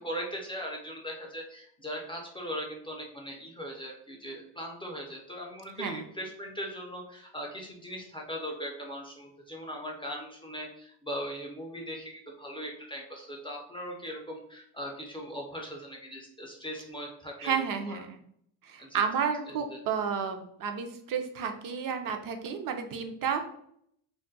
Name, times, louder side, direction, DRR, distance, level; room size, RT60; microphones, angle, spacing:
voice 1, 0.0-18.0 18.8-19.0 19.5-19.8, equal, 10° left, -1 dB, 0.4 m, -39 dB
voice 2, 17.4-18.2 18.6-23.4, right 7 dB, 45° right, 6 dB, 0.5 m, -31 dB
2.4 x 2.1 x 3.8 m, 0.68 s
cardioid pair, 115°, 47 cm